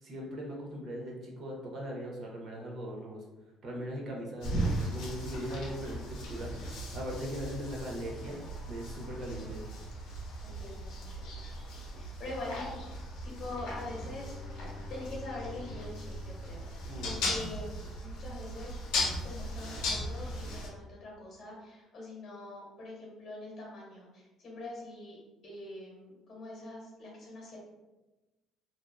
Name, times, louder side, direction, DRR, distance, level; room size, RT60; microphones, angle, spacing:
voice 1, 0.0-3.2 3.6-8.4 8.7-9.6 16.8-17.2, equal, 50° right, -1 dB, 0.6 m, -39 dB
sound 1, 4.4-20.7, equal, 90° left, 0.7 m, -37 dB
voice 2, 9.2-9.6 10.4-11.5 12.0-12.7 13.2-14.3 14.9-17.7 18.0-18.8 19.2-27.6, left 2 dB, 45° left, -4 dB, 1.0 m, -44 dB
Bowed string instrument, 13.3-17.8, left 4 dB, 10° left, 0.8 m, -49 dB
2.6 x 2.2 x 2.3 m, 1.1 s
cardioid pair, 130°, 0 cm